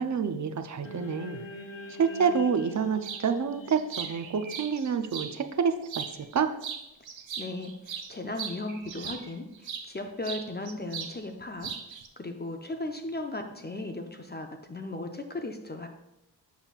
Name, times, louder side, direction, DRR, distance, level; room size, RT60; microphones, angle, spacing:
voice 1, 0.0-1.4 1.9-6.5, right 6 dB, 40° right, 9 dB, 0.5 m, -28 dB
sound 1, 0.8-5.2, left 2 dB, 80° left, 0.9 m, -45 dB
sound 2, 3.0-3.3 3.7-5.3 5.8-6.4 6.6-9.9 10.2-11.2 11.4-12.1, right 7 dB, 75° right, 0.7 m, -38 dB
voice 2, 7.4-15.9, left 2 dB, 25° left, 5 dB, 0.4 m, -37 dB
7.1 x 5.6 x 2.4 m, 0.89 s
wide cardioid pair, 100°, 46 cm